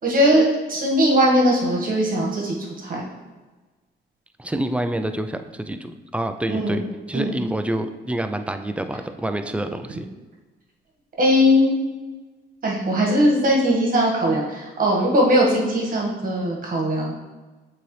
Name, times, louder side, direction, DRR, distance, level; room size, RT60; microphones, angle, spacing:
voice 1, 0.0-3.0 6.5-6.8 7.1-7.3 11.2-11.8 12.6-17.1, equal, 45° right, -2 dB, 1.6 m, -20 dB
voice 2, 4.4-6.8 7.1-10.1, right 1 dB, 5° right, 8 dB, 0.4 m, -27 dB
7.5 x 4.0 x 3.2 m, 1.3 s
cardioid pair, 90°, 20 cm